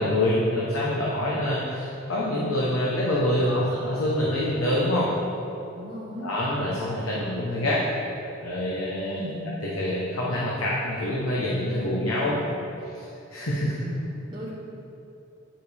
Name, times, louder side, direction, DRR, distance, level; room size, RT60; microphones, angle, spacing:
voice 1, 0.0-5.1 6.2-7.8 8.4-9.2 9.6-12.5 12.9-13.0 13.3-13.7, left 1 dB, 90° left, -6 dB, 1.0 m, -26 dB
voice 2, 5.7-6.3 9.2-9.5 13.7-14.5, equal, 20° right, -8 dB, 0.8 m, -36 dB
8.9 x 5.0 x 3.5 m, 2.9 s
head